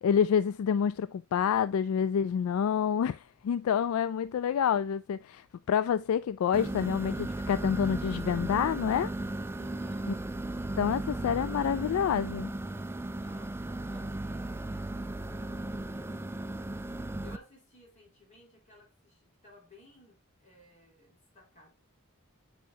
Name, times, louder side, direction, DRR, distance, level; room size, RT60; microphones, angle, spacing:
voice 1, 0.0-9.1 10.8-12.5, left 8 dB, 70° left, 0.3 m, -28 dB
sound 1, 6.5-17.4, right 2 dB, 10° right, 0.3 m, -36 dB
voice 2, 9.5-10.3 13.1-16.5 17.2-21.7, left 2 dB, 35° left, 3.6 m, -57 dB
8.4 x 5.7 x 2.7 m
head